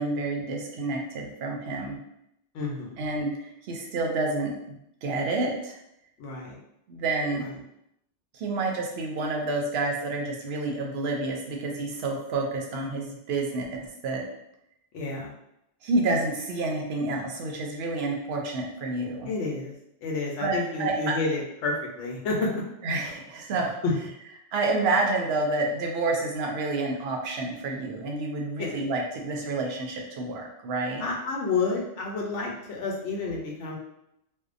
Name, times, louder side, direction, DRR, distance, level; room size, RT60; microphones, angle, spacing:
voice 1, 0.0-2.0 3.0-5.7 6.9-7.4 8.3-13.6 14.0-14.2 15.8-19.3 20.4-21.1 22.8-23.8 24.5-31.0, right 3 dB, 65° right, 0 dB, 0.8 m, -29 dB
voice 2, 2.5-3.0 6.2-6.6 7.3-7.5 14.9-15.3 19.3-19.7 20.0-22.6 23.5-23.9 28.6-28.7 31.0-33.8, left 3 dB, 85° left, -1 dB, 1.0 m, -30 dB
2.6 x 2.1 x 2.4 m, 0.79 s
omnidirectional pair, 1.2 m